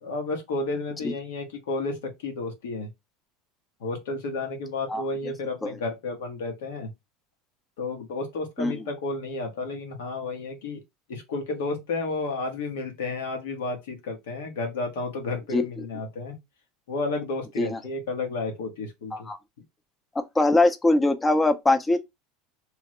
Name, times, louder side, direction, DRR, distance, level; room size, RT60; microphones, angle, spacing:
voice 1, 0.0-2.9 3.8-6.9 7.8-10.8 11.1-16.4 16.9-19.3, left 3 dB, 80° left, 1.1 m, -32 dB
voice 2, 15.5-15.8 17.6-17.8 19.1-19.4 20.3-22.1, left 2 dB, 15° left, 0.6 m, -22 dB
3.2 x 2.0 x 3.0 m
hypercardioid pair, 95°, 0 cm